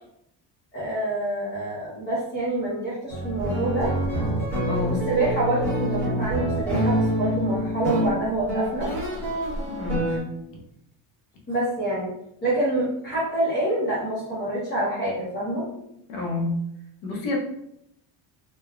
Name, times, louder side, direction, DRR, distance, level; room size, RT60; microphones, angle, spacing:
voice 1, 0.7-3.9 4.9-8.9 10.1-10.2 11.5-12.1 12.4-15.7, right 1 dB, 25° left, -8 dB, 0.7 m, -27 dB
sound 1, 3.1-10.2, right 1 dB, 5° left, 1.0 m, -26 dB
voice 2, 4.6-5.0 9.7-10.3 16.1-16.6 17.0-17.4, left 2 dB, 90° left, 0 dB, 1.0 m, -28 dB
3.4 x 2.2 x 2.3 m, 0.78 s
cardioid pair, 175°, 44 cm